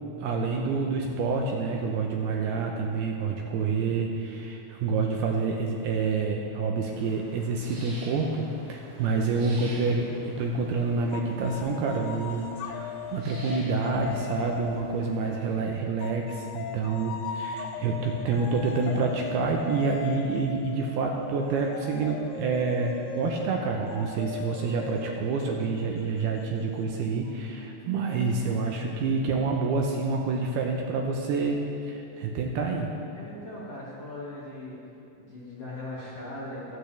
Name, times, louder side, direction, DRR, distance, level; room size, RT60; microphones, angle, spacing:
voice 1, 0.2-32.9, right 4 dB, 75° right, 1 dB, 2.5 m, -28 dB
sound 1, 6.9-15.6, right 1 dB, 50° right, 4.2 m, -49 dB
sound 2, 11.1-15.0 16.0-27.3, left 6 dB, 80° left, 2.3 m, -39 dB
voice 2, 33.1-34.8 35.2-36.8, left 1 dB, 45° left, -7 dB, 2.5 m, -39 dB
24.5 x 8.3 x 3.4 m, 2.6 s
omnidirectional pair, 5.0 m